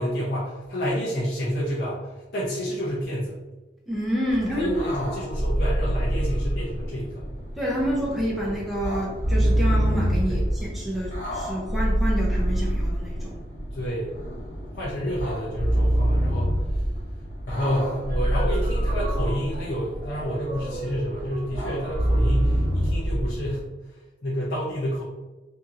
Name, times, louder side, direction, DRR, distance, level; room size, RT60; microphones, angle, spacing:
voice 1, 0.0-3.4 4.5-7.3 10.3-10.4 13.7-14.1 14.7-16.8 17.5-23.7 24.2-25.0, equal, 55° left, -7 dB, 0.6 m, -29 dB
voice 2, 3.9-4.7 7.6-13.4, equal, ahead, -6 dB, 0.5 m, -28 dB
sound 1, 4.3-23.6, right 1 dB, 40° left, 1.1 m, -26 dB
sound 2, 17.6-22.8, right 1 dB, 50° right, 0.7 m, -39 dB
2.8 x 2.7 x 2.4 m, 1.2 s
head